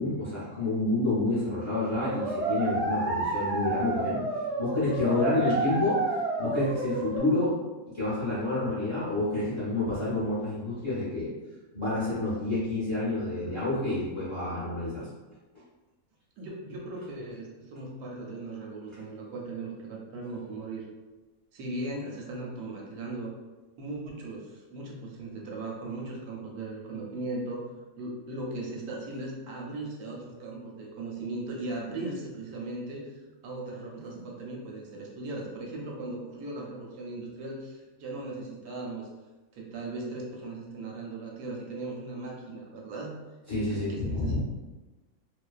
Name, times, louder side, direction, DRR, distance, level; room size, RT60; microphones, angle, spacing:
voice 1, 0.0-4.2 4.6-7.6 7.9-11.3 11.7-15.1 43.5-44.4, left 2 dB, 35° left, -10 dB, 0.4 m, -29 dB
sound 1, 2.0-7.2, right 2 dB, 60° right, 0.8 m, -30 dB
voice 2, 16.4-20.8 21.5-23.3 23.8-27.7 28.0-33.1 33.4-39.1 39.5-43.1 43.7-44.4, right 2 dB, 85° right, -2 dB, 1.1 m, -38 dB
2.4 x 2.2 x 2.3 m, 1.2 s
omnidirectional pair, 1.6 m